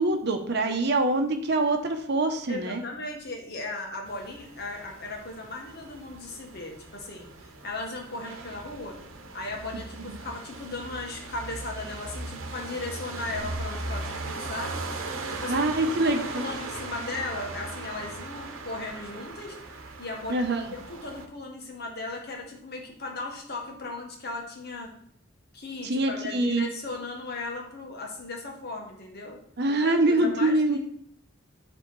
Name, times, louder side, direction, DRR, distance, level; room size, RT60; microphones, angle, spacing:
voice 1, 0.0-2.8 10.1-10.2 15.5-16.4 20.3-20.6 25.8-26.6 29.6-30.8, right 2 dB, 55° right, 6 dB, 0.8 m, -24 dB
voice 2, 2.5-9.0 9.3-14.8 15.3-15.6 16.0-19.6 20.0-24.9 25.5-29.4 29.8-30.8, left 2 dB, 50° left, 1 dB, 1.6 m, -37 dB
sound 1, 4.1-21.3, right 3 dB, 85° right, 0.9 m, -38 dB
10.0 x 3.5 x 4.6 m, 0.65 s
head